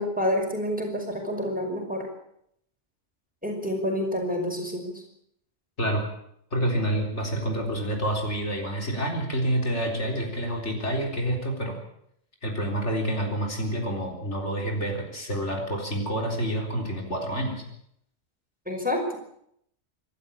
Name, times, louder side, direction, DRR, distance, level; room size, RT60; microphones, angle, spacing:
voice 1, 0.0-2.1 3.4-5.0 18.7-19.1, left 1 dB, 5° right, 2 dB, 5.4 m, -28 dB
voice 2, 6.5-11.8 12.4-17.6, right 1 dB, 65° left, 1 dB, 4.2 m, -28 dB
26.0 x 12.5 x 8.7 m, 0.73 s
omnidirectional pair, 1.3 m